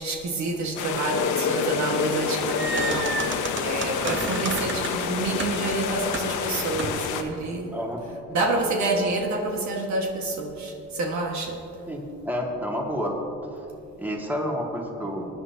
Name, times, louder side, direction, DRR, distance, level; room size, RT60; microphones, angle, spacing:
voice 1, 0.0-3.3 3.6-7.7 8.3-11.6, right 2 dB, 65° right, 1 dB, 1.6 m, -28 dB
sound 1, 0.8-7.2, left 7 dB, 85° left, 0.9 m, -30 dB
sound 2, 1.1-8.3, left 7 dB, 55° left, 0.8 m, -33 dB
sound 3, 2.2-7.1, right 3 dB, 40° right, 1.0 m, -33 dB
voice 2, 7.7-8.0 11.9-13.1 13.5-13.7 14.0-15.3, equal, 5° right, -1 dB, 2.0 m, -29 dB
19.5 x 9.9 x 2.9 m, 2.7 s
cardioid pair, 90°, 30 cm